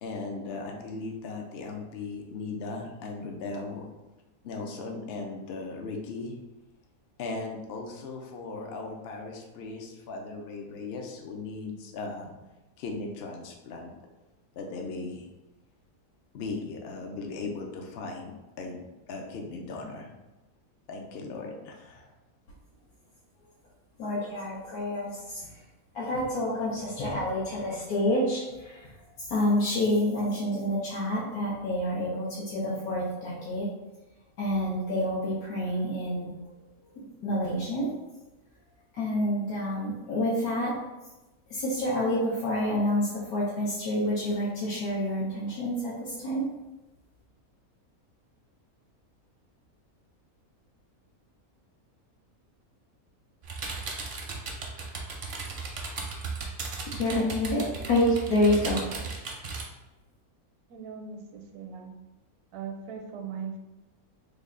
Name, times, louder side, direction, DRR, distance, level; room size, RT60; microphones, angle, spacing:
voice 1, 0.0-3.9 4.4-6.4 7.2-12.3 12.8-13.9 14.5-15.3 16.3-20.1 20.9-22.1, left 3 dB, 70° left, 2 dB, 0.6 m, -37 dB
voice 2, 24.0-25.6 25.9-33.7 34.4-36.6 36.8-38.0 38.9-40.8 41.5-46.4 56.9-58.8, left 1 dB, 85° left, -8 dB, 1.3 m, -28 dB
sound 1, 53.4-59.6, right 4 dB, 55° right, 0.6 m, -36 dB
voice 3, 60.7-61.9 62.5-63.6, right 6 dB, 80° right, 3 dB, 1.0 m, -39 dB
3.3 x 2.3 x 3.7 m, 1.1 s
omnidirectional pair, 1.5 m